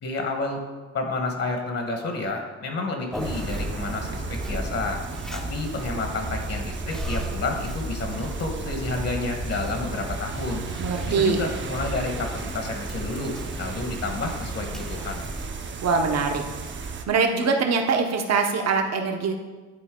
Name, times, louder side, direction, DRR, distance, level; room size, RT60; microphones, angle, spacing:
voice 1, 0.0-0.6 0.9-4.2 4.5-5.0 5.3-10.6 11.1-15.2, left 3 dB, 50° left, 3 dB, 1.3 m, -30 dB
Conversation, 3.1-15.5, left 1 dB, ahead, 0.6 m, -35 dB
sound 1, 3.2-17.1, right 4 dB, 40° right, 0.7 m, -35 dB
voice 2, 10.8-11.4 15.8-16.4 17.1-19.4, right 5 dB, 60° right, 4 dB, 1.0 m, -23 dB
10.5 x 4.2 x 3.7 m, 1.3 s
cardioid pair, 90°, 30 cm